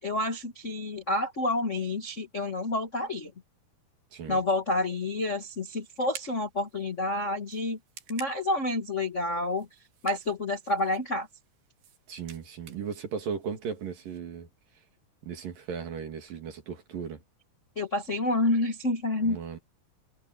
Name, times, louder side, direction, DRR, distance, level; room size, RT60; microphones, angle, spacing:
voice 1, 0.0-3.3 4.3-7.8 8.1-9.7 10.0-11.3 17.7-19.4, left 2 dB, 40° left, 1.0 m, -29 dB
sound 1, 5.0-14.2, right 9 dB, 80° right, 4.2 m, -52 dB
voice 2, 12.1-14.5 15.2-17.2 19.2-19.6, right 6 dB, 60° right, 4.3 m, -36 dB
omnidirectional pair, 4.5 m